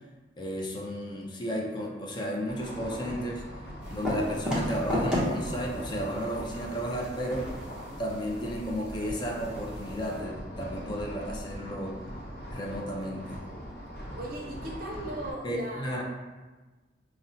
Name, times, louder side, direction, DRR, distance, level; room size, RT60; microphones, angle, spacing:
voice 1, 0.4-3.4 3.9-7.5 8.0-12.0 12.5-13.4 15.4-16.0, equal, 25° left, -1 dB, 0.4 m, -33 dB
sound 1, 2.4-15.3, equal, 55° left, 0.7 m, -41 dB
sound 2, 3.8-10.2, equal, 5° right, 0.7 m, -35 dB
voice 2, 14.2-16.0, right 1 dB, 50° right, -1 dB, 0.6 m, -38 dB
5.2 x 2.0 x 2.6 m, 1.2 s
head